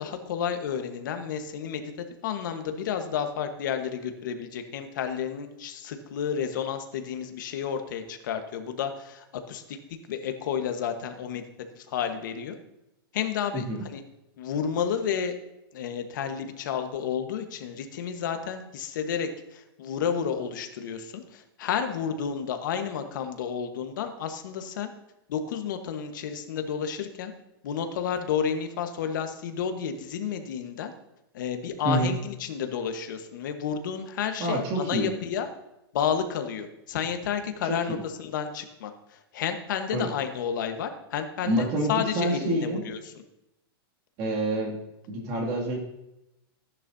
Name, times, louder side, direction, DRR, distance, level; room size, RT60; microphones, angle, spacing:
voice 1, 0.0-11.4 11.7-12.6 13.1-14.0 14.4-15.3 15.7-24.9 25.3-27.3 27.6-30.9 31.3-35.5 35.9-43.1, left 7 dB, 50° left, 6 dB, 1.3 m, -31 dB
voice 2, 34.4-35.1 37.7-38.0 39.9-40.1 41.4-42.8 44.2-44.8 45.1-45.8, right 1 dB, 30° right, -1 dB, 2.5 m, -27 dB
15.5 x 10.5 x 2.7 m, 0.89 s
supercardioid pair, 170°, 13 cm